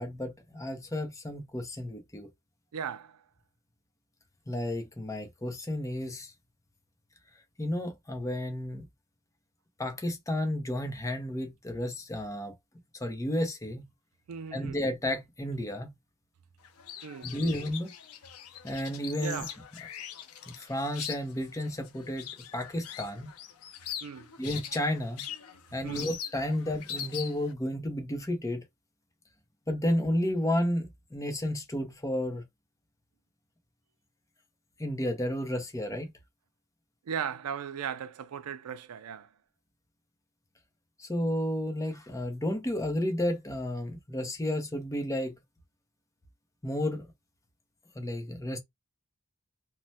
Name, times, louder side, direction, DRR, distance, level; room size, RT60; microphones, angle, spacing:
voice 1, 0.0-2.3 4.5-6.3 7.6-8.9 9.8-12.5 12.9-13.8 14.5-15.9 17.2-17.9 18.6-19.5 20.5-23.3 24.4-25.3 25.7-28.6 29.7-32.4 34.8-36.1 41.0-45.4 46.6-47.1 48.0-48.6, left 1 dB, 15° left, 0.6 m, -32 dB
voice 2, 2.7-3.2 14.3-14.8 17.0-17.3 19.2-19.5 24.0-24.3 25.8-26.1 37.1-39.3, right 7 dB, 85° right, 0.4 m, -37 dB
sound 1, 16.6-27.5, left 9 dB, 85° left, 0.6 m, -42 dB
3.1 x 2.1 x 2.7 m
head